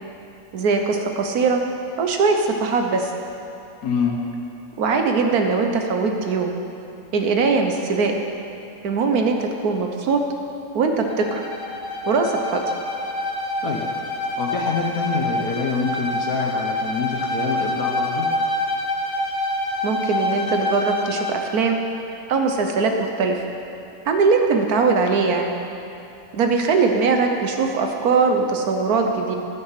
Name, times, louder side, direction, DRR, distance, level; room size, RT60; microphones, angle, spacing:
voice 1, 0.5-1.6 2.0-3.1 4.8-6.5 7.1-8.1 8.8-10.2 10.7-11.4 12.1-12.6 19.8-21.8 22.3-23.4 24.1-25.5 26.3-29.4, right 4 dB, 85° right, 4 dB, 1.5 m, -21 dB
voice 2, 3.8-4.2 13.6-13.9 14.4-18.3, left 5 dB, 75° left, 0 dB, 1.4 m, -26 dB
Bowed string instrument, 11.0-21.5, left 1 dB, 40° left, 1.0 m, -26 dB
13.0 x 7.6 x 5.8 m, 2.7 s
omnidirectional pair, 1.6 m